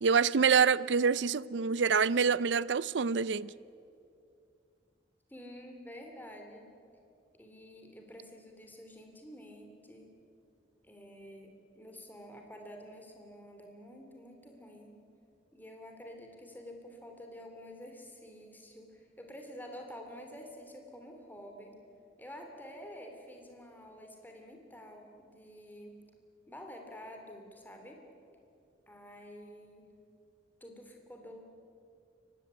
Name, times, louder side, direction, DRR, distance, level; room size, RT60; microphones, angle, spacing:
voice 1, 0.0-3.5, right 6 dB, 75° right, 0.5 m, -26 dB
voice 2, 5.3-6.7 7.4-10.1 10.8-15.0 15.5-21.8 22.2-26.0 26.5-28.0 28.9-29.9 30.6-31.4, equal, 10° left, 3.1 m, -49 dB
23.5 x 18.5 x 9.8 m
head